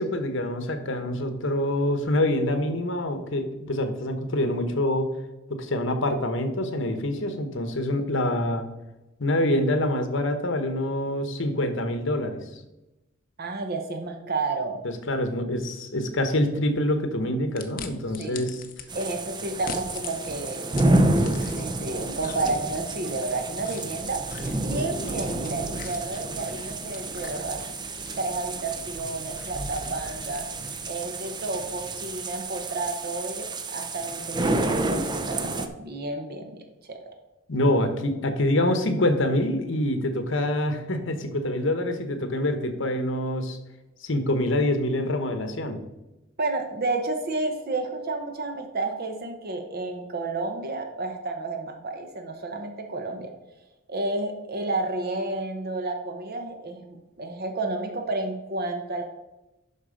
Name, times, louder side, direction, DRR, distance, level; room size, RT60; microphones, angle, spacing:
voice 1, 0.0-5.1 5.5-8.7 9.2-12.4 14.8-18.6 37.5-43.6 44.0-45.8, left 1 dB, 70° left, 8 dB, 1.1 m, -26 dB
voice 2, 13.4-14.8 18.2-18.5 18.9-20.8 21.6-24.2 24.5-27.6 28.2-30.5 30.9-36.6 36.9-37.1 46.4-53.3 53.9-59.0, right 2 dB, 50° right, 5 dB, 0.9 m, -31 dB
Bone breaks and chew, 17.6-18.9 19.5-21.8 22.2-30.8, left 6 dB, 45° left, 0.8 m, -44 dB
sound 1, 18.9-35.7, right 2 dB, 20° right, 0.6 m, -29 dB
11.0 x 4.2 x 5.1 m, 0.98 s
head